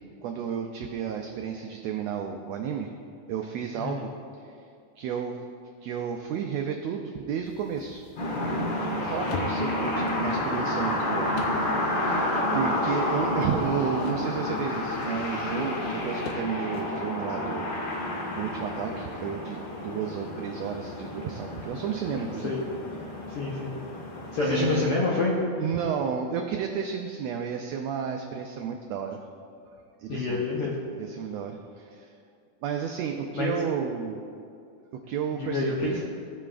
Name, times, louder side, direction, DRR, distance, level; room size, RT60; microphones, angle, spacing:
voice 1, 0.2-2.9 3.3-4.1 4.4-4.6 5.0-5.4 5.8-8.0 9.0-11.3 12.5-17.7 18.3-19.6 19.8-22.6 24.4-25.0 25.6-29.2 30.0-30.7 31.0-32.1 32.6-34.2 34.9-36.0, right 7 dB, 85° right, 3 dB, 1.5 m, -32 dB
sound 1, 7.4-16.3, left 5 dB, 90° left, 2.3 m, -44 dB
sound 2, 8.2-24.8, left 1 dB, 60° left, 1.3 m, -30 dB
voice 2, 23.3-23.8 24.3-25.3 30.1-30.7 33.3-33.5 35.4-36.0, left 4 dB, 75° left, -4 dB, 1.4 m, -27 dB
17.0 x 5.7 x 2.4 m, 2.4 s
omnidirectional pair, 3.6 m